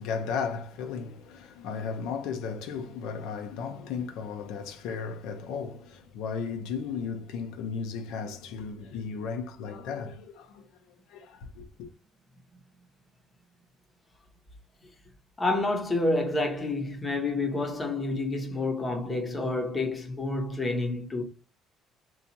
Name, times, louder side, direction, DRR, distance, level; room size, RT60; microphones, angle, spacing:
voice 1, 0.0-10.6 11.1-11.9, left 6 dB, 90° left, 0.7 m, -35 dB
voice 2, 15.4-21.2, left 2 dB, 15° left, 0.8 m, -29 dB
2.9 x 2.4 x 3.9 m
cardioid pair, 155°, 0 cm